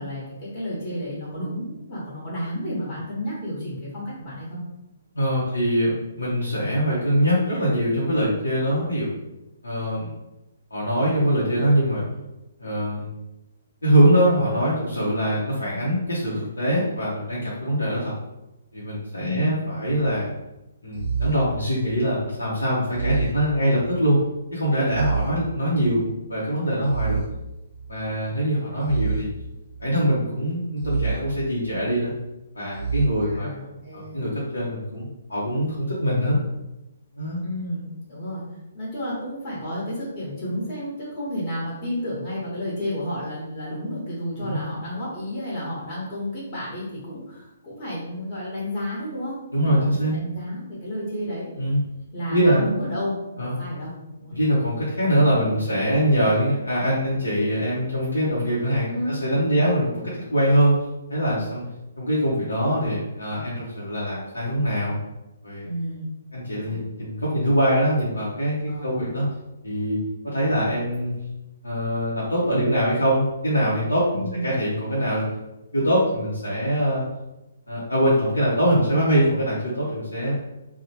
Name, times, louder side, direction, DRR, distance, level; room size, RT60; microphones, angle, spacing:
voice 1, 0.0-4.6 19.2-19.7 33.2-34.2 37.4-38.4 38.7-51.5 52.1-53.9 54.2-54.3 58.9-59.2 65.6-66.0 66.5-66.8 68.7-69.0 74.1-74.6, equal, 35° left, -7 dB, 1.1 m, -31 dB
voice 2, 5.1-9.1 9.6-10.1 10.7-12.0 12.6-13.1 13.8-18.1 18.7-20.3 20.8-24.2 24.5-27.2 27.9-29.3 29.8-32.1 32.5-33.5 33.9-36.4 37.2-37.4 44.4-44.6 49.5-50.1 51.6-51.8 52.3-52.6 53.4-53.6 54.3-60.7 61.1-61.7 62.0-65.0 65.4-65.7 66.3-69.3 69.6-70.0 70.2-71.1 71.6-75.2 75.7-77.0 77.7-80.3, equal, 90° left, -8 dB, 0.7 m, -23 dB
sound 1, 20.9-22.2 22.9-24.2 24.9-26.2 26.8-28.1 28.8-30.1 30.8-32.1 32.7-33.1, right 5 dB, 40° right, 0.5 m, -30 dB
2.9 x 2.0 x 2.8 m, 0.96 s
figure-of-eight pair, 135°, 0 cm